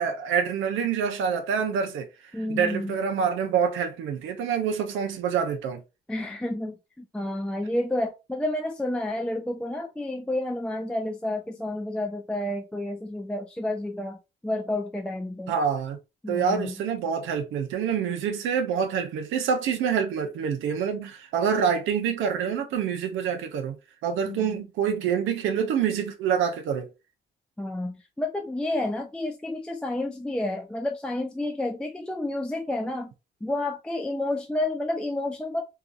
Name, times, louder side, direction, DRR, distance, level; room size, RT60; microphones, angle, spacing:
voice 1, 0.0-2.1 2.5-5.8 15.5-16.0 16.3-23.8 24.0-26.9, right 7 dB, 80° right, 0.5 m, -26 dB
voice 2, 2.3-3.0 6.1-14.2 14.4-15.5 16.2-16.7 24.3-24.6 27.6-33.1 33.4-35.6, left 1 dB, 5° left, 0.4 m, -30 dB
2.7 x 2.3 x 2.4 m
cardioid pair, 90°, 20 cm